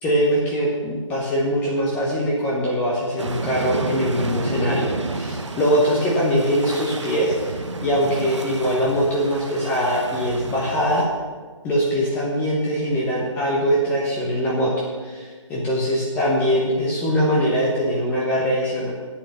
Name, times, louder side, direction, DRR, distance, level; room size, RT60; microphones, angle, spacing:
voice 1, 0.0-11.1 11.6-14.7 15.0-18.9, equal, 10° left, -4 dB, 1.2 m, -22 dB
sound 1, 3.2-11.1, right 3 dB, 60° right, 1.2 m, -31 dB
10.0 x 8.6 x 6.8 m, 1.5 s
figure-of-eight pair, 145°, 17 cm